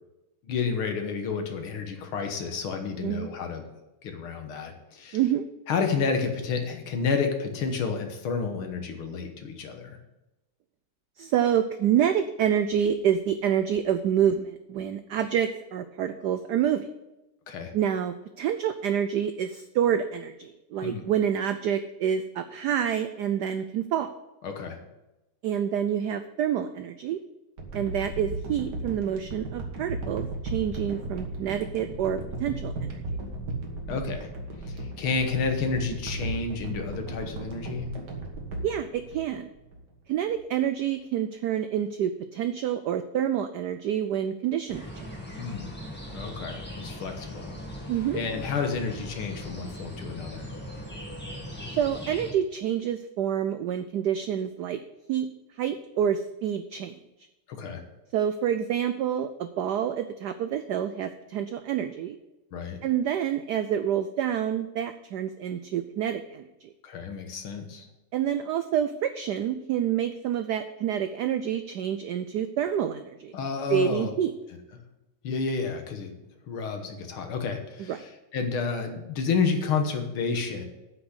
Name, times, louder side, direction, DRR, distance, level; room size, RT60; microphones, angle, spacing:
voice 1, 0.4-3.6 4.0-5.2 5.7-10.0 17.5-17.7 20.8-21.0 24.4-24.8 33.9-34.3 34.7-37.9 45.4-45.7 46.1-47.5 48.1-50.5 57.5-57.8 62.5-62.8 66.8-67.9 73.3-74.1 75.2-76.1 76.5-80.7, left 5 dB, 80° left, 5 dB, 2.1 m, -30 dB
voice 2, 5.1-5.5 11.2-16.9 17.7-24.1 25.4-27.2 27.7-33.0 38.6-39.5 40.1-45.1 47.9-48.2 51.8-54.8 55.1-55.3 55.6-57.0 58.1-62.2 62.8-66.7 68.1-73.3 73.7-74.3 77.8-78.0, right 9 dB, 80° right, 10 dB, 0.9 m, -27 dB
sound 1, 27.6-39.8 40.3-40.4, right 2 dB, 55° right, 2.1 m, -35 dB
sound 2, 44.7-52.3, equal, 5° left, 1.5 m, -39 dB
8.4 x 6.1 x 8.0 m, 0.98 s
omnidirectional pair, 2.3 m